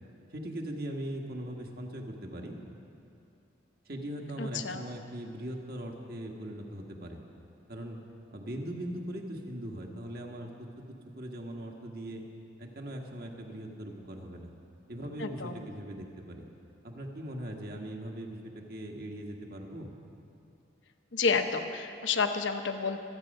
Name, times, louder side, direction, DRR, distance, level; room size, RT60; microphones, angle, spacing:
voice 1, 0.3-2.6 3.8-7.2 7.7-8.0 8.3-12.2 12.6-14.5 14.9-16.5 16.8-19.9, right 1 dB, 55° right, 1 dB, 1.6 m, -40 dB
voice 2, 4.4-4.8 15.2-15.7 21.1-23.0, left 5 dB, 75° left, 7 dB, 0.9 m, -30 dB
25.0 x 9.1 x 5.4 m, 2.7 s
head